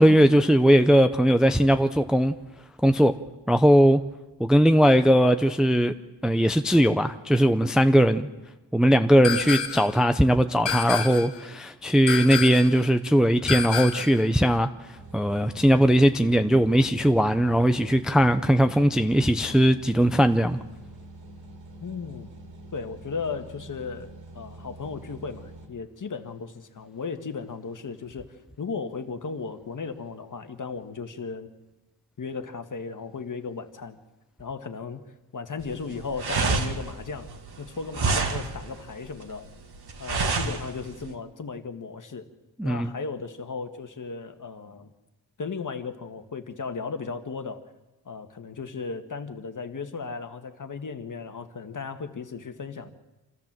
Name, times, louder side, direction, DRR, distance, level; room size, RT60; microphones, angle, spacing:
voice 1, 0.0-2.3 2.8-3.1 3.5-4.0 4.4-5.9 6.2-8.3 8.7-14.7 15.1-20.6 42.6-42.9, equal, ahead, 0.6 m, -19 dB
sound 1, 9.2-10.0 10.7-11.4 12.1-12.8 13.5-14.2, left 6 dB, 80° left, 1.5 m, -29 dB
sound 2, 15.0-25.7, right 2 dB, 80° right, 3.3 m, -45 dB
voice 2, 21.8-22.3 22.7-24.1 24.3-31.5 32.2-34.0 34.4-35.0 35.3-37.3 37.6-39.5 40.0-42.3 42.6-44.9 45.4-47.6 48.0-52.9, left 5 dB, 45° left, 1.6 m, -35 dB
sound 3, 35.6-41.1, right 4 dB, 60° right, 2.3 m, -28 dB
27.5 x 14.0 x 7.5 m
wide cardioid pair, 120°, 45 cm